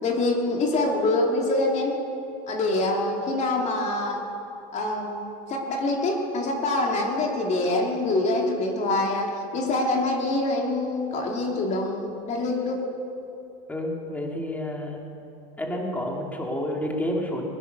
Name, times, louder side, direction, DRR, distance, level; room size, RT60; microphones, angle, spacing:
voice 1, 0.0-1.9 2.5-4.2 4.7-12.8, left 2 dB, 35° left, 0 dB, 2.9 m, -25 dB
voice 2, 13.7-15.0 15.6-17.5, left 1 dB, 10° left, 0 dB, 2.7 m, -29 dB
21.5 x 9.9 x 6.8 m, 2.8 s
supercardioid pair, 115°, 20 cm